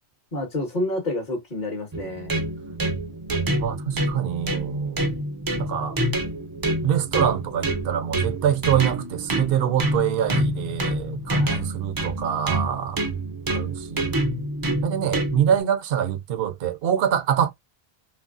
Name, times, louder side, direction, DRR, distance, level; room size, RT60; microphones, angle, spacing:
voice 1, 0.3-2.3 11.3-11.6, left 1 dB, 45° left, 1.0 m, -29 dB
sound 1, 1.9-15.6, right 1 dB, 35° right, 0.4 m, -27 dB
voice 2, 3.5-5.2 5.6-6.0 6.8-13.0 13.5-14.2 14.8-17.5, right 9 dB, 65° right, 0.7 m, -25 dB
3.0 x 2.5 x 2.5 m
omnidirectional pair, 1.1 m